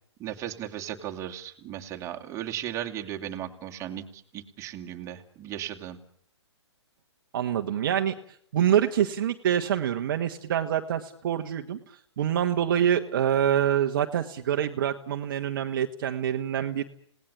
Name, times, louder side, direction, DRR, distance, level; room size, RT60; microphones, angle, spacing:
voice 1, 0.2-6.0, right 11 dB, 20° right, 3 dB, 2.6 m, -36 dB
voice 2, 7.3-8.1 8.5-16.8, right 9 dB, 45° right, 5 dB, 1.6 m, -26 dB
28.5 x 18.5 x 8.7 m, 0.67 s
figure-of-eight pair, 125°, 15 cm